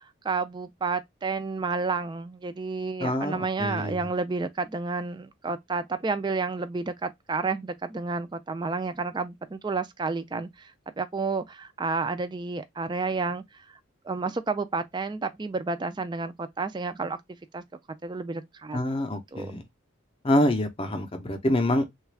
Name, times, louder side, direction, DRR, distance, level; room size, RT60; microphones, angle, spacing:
voice 1, 0.2-10.7 11.0-13.4 14.1-17.2 17.5-17.6 18.0-18.8 19.3-19.6, right 4 dB, 20° right, 0.3 m, -30 dB
voice 2, 3.0-4.1 18.7-19.6 20.2-22.0, left 1 dB, 25° left, 0.6 m, -26 dB
3.4 x 2.3 x 3.2 m
head